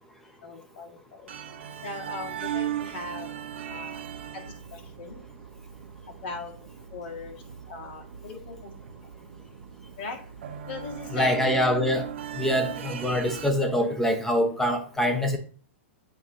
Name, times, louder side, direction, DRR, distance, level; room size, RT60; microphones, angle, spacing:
voice 1, 0.4-1.3 1.8-3.3 3.7-4.0 4.3-5.2 6.1-6.5 6.9-8.7 10.0-10.2 10.7-11.4 12.7-12.8, left 4 dB, 50° left, 0 dB, 1.8 m, -39 dB
sound 1, 1.3-13.5, right 10 dB, 75° right, 0.9 m, -38 dB
voice 2, 11.1-12.1 12.3-15.4, equal, 5° left, 5 dB, 0.8 m, -24 dB
7.8 x 2.7 x 4.9 m, 0.42 s
supercardioid pair, 160°, 7 cm